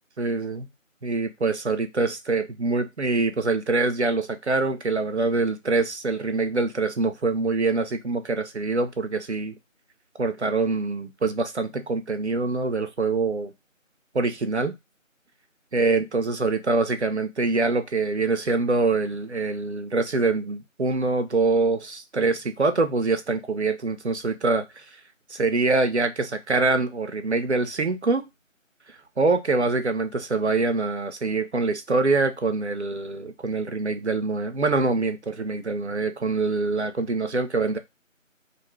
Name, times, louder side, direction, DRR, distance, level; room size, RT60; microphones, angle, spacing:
voice 1, 0.2-0.7 1.0-9.5 10.2-13.5 14.1-14.8 15.7-24.8 25.3-28.3 29.2-37.8, right 3 dB, 55° right, 0.5 m, -24 dB
2.5 x 2.4 x 3.1 m
figure-of-eight pair, 175°, 40 cm